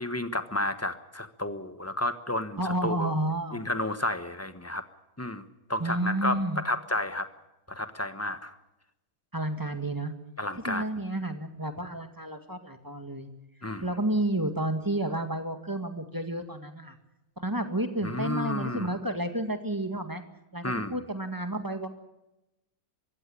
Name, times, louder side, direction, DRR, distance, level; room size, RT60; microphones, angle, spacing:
voice 1, 0.0-3.1 3.5-4.8 5.2-7.3 7.7-8.6 10.4-10.8 13.6-13.8 18.0-18.9 20.6-21.0, left 1 dB, 10° left, 10 dB, 1.0 m, -31 dB
voice 2, 2.6-3.6 5.8-6.6 9.3-10.1 10.5-13.3 13.8-17.0 17.4-20.2 20.5-21.9, right 1 dB, 10° right, 7 dB, 1.9 m, -31 dB
23.5 x 15.5 x 9.9 m, 0.94 s
omnidirectional pair, 1.9 m